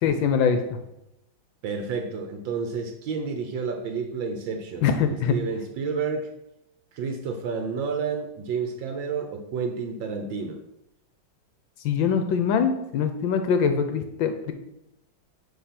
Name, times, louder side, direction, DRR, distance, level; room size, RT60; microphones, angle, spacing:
voice 1, 0.0-0.8 4.8-5.3 11.8-14.5, left 6 dB, 75° left, 7 dB, 1.4 m, -23 dB
voice 2, 1.6-4.9 5.3-6.3 6.9-10.6, right 5 dB, 75° right, 5 dB, 1.5 m, -30 dB
9.5 x 3.3 x 5.8 m, 0.84 s
omnidirectional pair, 2.2 m